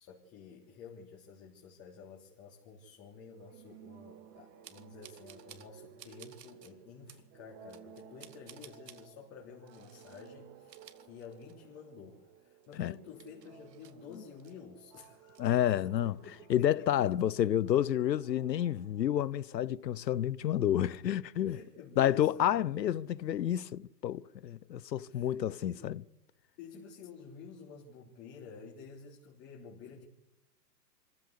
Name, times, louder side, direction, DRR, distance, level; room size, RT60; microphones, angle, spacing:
voice 1, 0.0-17.1 21.5-22.8 25.1-25.9 26.6-30.1, left 5 dB, 30° left, 3.4 m, -51 dB
sound 1, 3.4-19.8, right 8 dB, 35° right, 3.1 m, -57 dB
sound 2, 4.6-5.7 6.0-6.7 7.1-7.2 7.7-9.1 9.7-10.3 10.6-11.8 12.1-12.2 12.6-14.5 14.9-15.4, right 9 dB, 75° right, 2.3 m, -56 dB
voice 2, 15.4-16.2 16.5-21.6 22.0-26.0, left 11 dB, 80° left, 1.0 m, -29 dB
25.5 x 15.0 x 8.4 m
hypercardioid pair, 140°, 50 cm